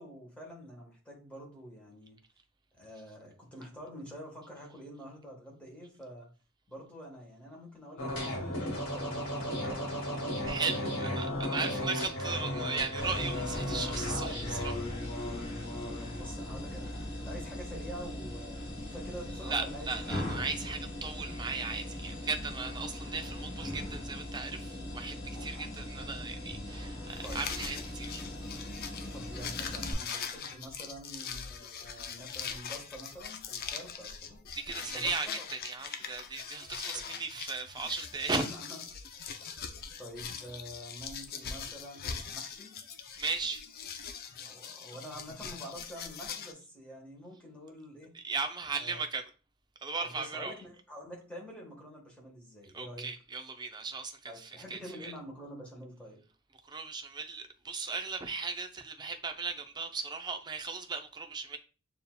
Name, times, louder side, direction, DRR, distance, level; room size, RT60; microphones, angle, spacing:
voice 1, 0.0-2.2 2.7-6.3 6.7-11.2 11.6-12.1 15.7-19.9 27.2-27.8 29.0-34.4 34.9-35.4 36.9-37.2 38.3-38.8 40.0-42.7 44.5-48.1 48.7-49.0 50.0-53.1 54.3-56.2, equal, 5° left, 1.3 m, -47 dB
sound 1, 8.0-16.3, left 1 dB, 65° left, 1.9 m, -35 dB
voice 2, 10.4-14.8 19.4-28.2 34.5-38.5 43.2-43.6 48.2-49.3 49.8-50.5 52.7-55.1 56.7-61.6, right 4 dB, 20° right, 0.4 m, -37 dB
sound 2, 13.0-29.9, left 1 dB, 30° left, 1.9 m, -40 dB
sound 3, 27.1-46.5, left 7 dB, 45° left, 0.4 m, -42 dB
6.7 x 2.8 x 2.2 m
head